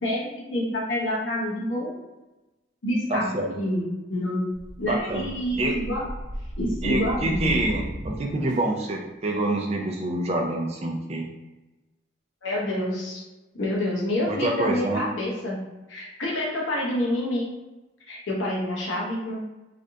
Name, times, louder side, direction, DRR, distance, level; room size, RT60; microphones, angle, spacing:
voice 1, 0.0-1.9 2.8-4.5 4.8-6.1 6.6-7.5 12.4-13.2 13.5-15.6 15.9-17.5 18.1-19.4, left 1 dB, 80° left, -4 dB, 0.8 m, -27 dB
voice 2, 3.1-3.5 4.8-5.3 5.6-5.7 6.8-11.2 14.3-15.0, right 1 dB, 35° right, 1 dB, 0.4 m, -26 dB
sound 1, 4.5-8.9, equal, 70° right, 0.6 m, -36 dB
3.2 x 2.5 x 2.6 m, 1.1 s
head